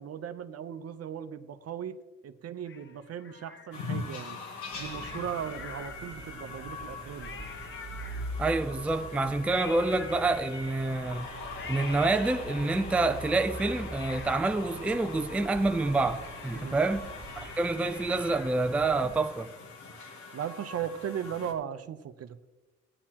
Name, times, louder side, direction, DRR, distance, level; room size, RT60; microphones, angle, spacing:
voice 1, 0.0-4.4 4.7-7.5 16.5-16.8 20.3-22.4, right 9 dB, 55° right, 0.7 m, -37 dB
Cat, 2.7-4.1 5.0-6.4 6.8-6.9 7.1-8.7 9.5-10.9 11.5-12.8 13.3-15.3 15.6-15.7 16.0-18.8 19.1-19.2, left 5 dB, 40° left, 0.9 m, -47 dB
sound 1, 3.7-21.5, left 4 dB, 75° left, 1.9 m, -43 dB
sound 2, 4.7-19.2, right 1 dB, 30° right, 1.3 m, -44 dB
voice 2, 8.4-11.3 11.7-17.1 17.4-19.5, right 3 dB, 5° right, 0.4 m, -27 dB
14.5 x 9.8 x 2.9 m
cardioid pair, 90°, 30 cm